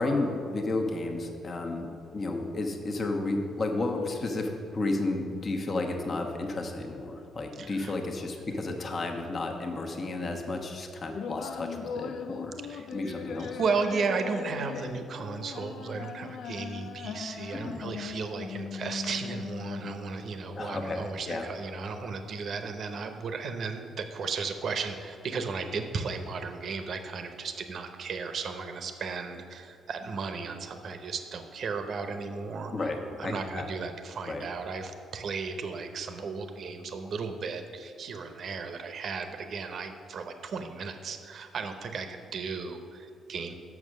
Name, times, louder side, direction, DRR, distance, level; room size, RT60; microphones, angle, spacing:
voice 1, 0.0-12.6 12.9-13.6 17.5-17.8 20.6-21.5 32.7-33.7 34.3-34.5, left 2 dB, 40° left, 3 dB, 1.0 m, -32 dB
voice 2, 7.6-7.9 12.7-32.9 33.2-43.5, right 5 dB, 60° right, 7 dB, 0.8 m, -35 dB
sound 1, 11.1-20.1, left 6 dB, 70° left, 0.5 m, -39 dB
7.3 x 6.2 x 6.4 m, 2.4 s
cardioid pair, 90°, 0 cm